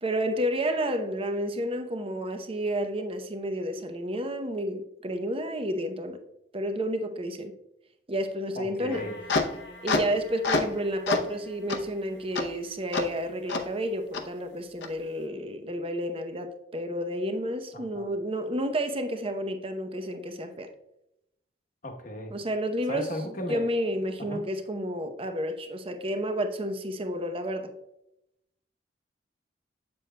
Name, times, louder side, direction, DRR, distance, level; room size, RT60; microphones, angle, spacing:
voice 1, 0.0-6.2 6.5-7.5 8.1-9.0 9.8-20.7 22.3-27.7, equal, 30° right, 7 dB, 0.7 m, -31 dB
voice 2, 8.5-9.2 17.7-18.2 21.8-22.4 22.9-23.7 24.2-24.4, left 1 dB, 50° left, 4 dB, 1.0 m, -36 dB
sound 1, 8.9-10.8 11.1-11.3 11.7-11.8 12.3-12.4 12.9-13.0 13.5-13.6 14.1-14.2 14.8-14.9, left 3 dB, 75° left, 0.7 m, -28 dB
7.8 x 6.9 x 2.2 m, 0.84 s
head